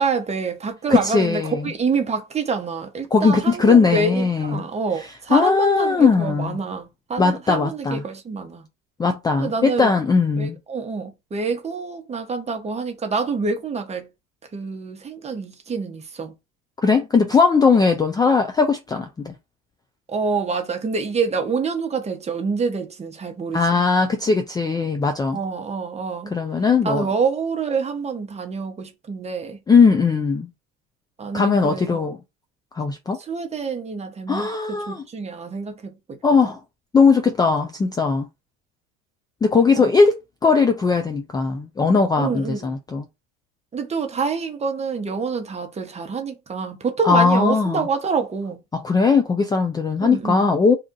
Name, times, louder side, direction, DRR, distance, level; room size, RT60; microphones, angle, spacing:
voice 1, 0.0-8.7 9.4-10.0 10.4-14.1 14.5-16.3 20.1-23.8 25.3-26.3 26.8-29.6 31.2-32.1 33.2-34.5 34.9-36.2 39.7-39.9 42.2-42.8 43.7-48.6 50.0-50.4, right 4 dB, 20° right, 0.9 m, -26 dB
voice 2, 0.9-1.7 3.1-4.7 5.3-6.6 7.2-8.0 9.0-10.6 16.8-19.3 23.5-25.4 26.3-27.1 29.7-30.5 31.3-32.2 32.8-33.2 34.3-35.0 36.2-36.6 36.9-38.3 39.4-43.0 47.0-47.9 48.7-50.8, left 4 dB, 15° left, 0.4 m, -19 dB
2.8 x 2.5 x 3.7 m
supercardioid pair, 115°, 29 cm